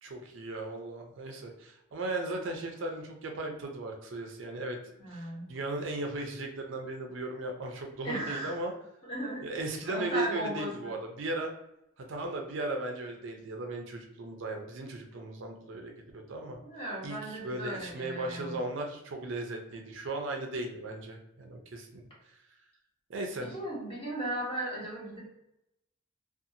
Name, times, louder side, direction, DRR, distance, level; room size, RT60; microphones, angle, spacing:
voice 1, 0.0-4.8 5.1-8.7 9.4-11.5 12.0-16.6 17.0-17.2 17.4-22.4 23.1-23.5, right 2 dB, 65° right, 3 dB, 0.4 m, -37 dB
voice 2, 5.0-5.5 8.0-8.6 9.0-9.4 9.8-10.9 16.6-18.6 23.4-25.4, right 1 dB, 25° left, -5 dB, 1.0 m, -36 dB
2.5 x 2.3 x 2.7 m, 0.85 s
head